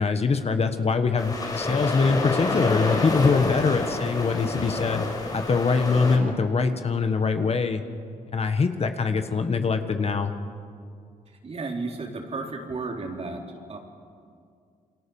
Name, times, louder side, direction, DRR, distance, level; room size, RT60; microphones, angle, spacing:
voice 1, 0.0-5.1 5.3-7.8 8.3-10.3, left 4 dB, 45° left, 7 dB, 1.7 m, -23 dB
sound 1, 1.2-6.2, left 2 dB, 25° left, 6.2 m, -29 dB
voice 2, 11.4-13.4 13.7-13.8, right 3 dB, 45° right, 2 dB, 3.9 m, -33 dB
28.5 x 24.0 x 7.3 m, 2.3 s
cardioid pair, 100°, 15 cm